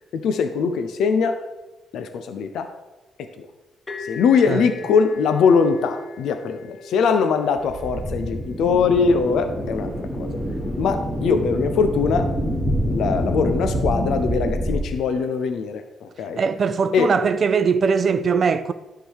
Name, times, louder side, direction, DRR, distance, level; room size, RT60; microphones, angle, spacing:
voice 1, 0.1-1.4 1.9-2.7 3.2-3.5 4.0-10.4 10.8-12.3 12.8-16.4 16.9-17.1, left 5 dB, 75° left, 0.7 m, -21 dB
sound 1, 3.9-11.4, left 3 dB, 20° left, 1.3 m, -42 dB
sound 2, 7.6-14.8, equal, ahead, 2.4 m, -26 dB
voice 2, 16.4-18.7, right 5 dB, 45° right, 0.5 m, -20 dB
10.0 x 3.7 x 6.4 m
cardioid pair, 90°, 0 cm